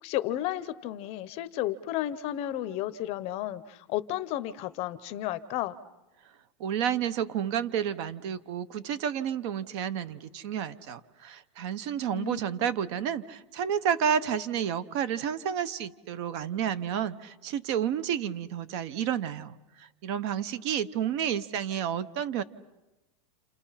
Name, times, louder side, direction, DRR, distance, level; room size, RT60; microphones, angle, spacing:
voice 1, 0.0-5.7 12.1-12.7, left 13 dB, 30° left, 13 dB, 0.8 m, -33 dB
voice 2, 6.6-22.4, right 9 dB, 45° right, 15 dB, 1.0 m, -30 dB
30.0 x 28.5 x 5.7 m, 1.1 s
supercardioid pair, 165°, 20 cm